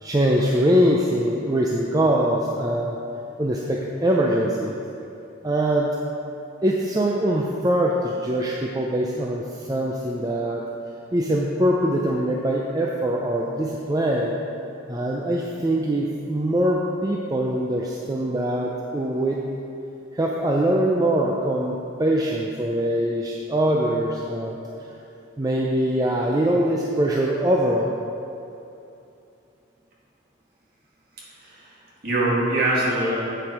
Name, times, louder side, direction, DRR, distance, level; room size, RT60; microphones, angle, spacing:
voice 1, 0.0-3.0 3.4-4.8 5.4-6.0 6.6-10.6 11.1-14.4 14.9-19.4 20.1-24.6 25.4-28.0, right 1 dB, 20° right, -1 dB, 0.4 m, -23 dB
voice 2, 31.2-31.8 32.0-33.2, right 1 dB, 45° right, -6 dB, 2.0 m, -23 dB
8.0 x 7.1 x 4.9 m, 2.7 s
head